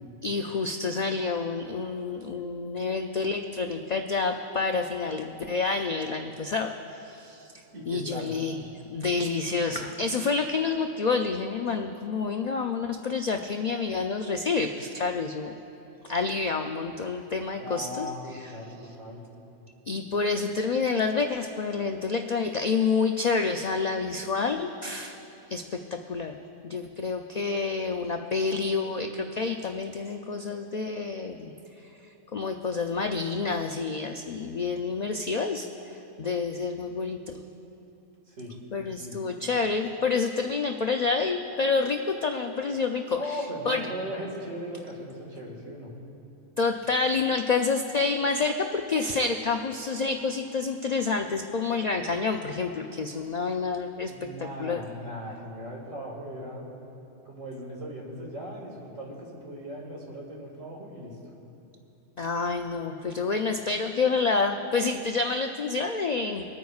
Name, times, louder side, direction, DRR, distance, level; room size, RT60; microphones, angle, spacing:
voice 1, 0.2-7.5 7.9-8.6 8.9-15.5 16.0-18.5 19.9-25.2 25.5-26.3 26.6-31.5 32.3-37.4 38.7-43.4 43.7-43.9 46.6-54.1 54.6-54.8 62.2-66.5, left 4 dB, 75° left, 4 dB, 0.3 m, -28 dB
voice 2, 7.7-8.3 17.6-19.2 38.3-38.6 39.0-39.1 43.1-45.9 54.0-56.7 57.2-61.2, equal, 75° right, -2 dB, 2.3 m, -38 dB
25.0 x 9.3 x 2.4 m, 2.9 s
omnidirectional pair, 1.3 m